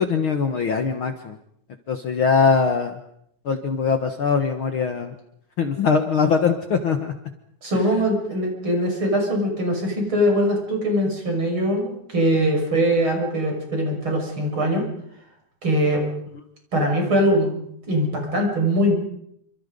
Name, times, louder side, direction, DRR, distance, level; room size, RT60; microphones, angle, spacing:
voice 1, 0.0-1.4 1.9-3.0 3.5-5.1 5.6-7.1, left 5 dB, 50° left, 6 dB, 1.9 m, -21 dB
voice 2, 7.6-14.9 15.6-16.1 16.7-17.5 17.9-18.9, equal, 40° right, 1 dB, 7.1 m, -22 dB
28.0 x 26.5 x 5.3 m, 0.72 s
omnidirectional pair, 3.4 m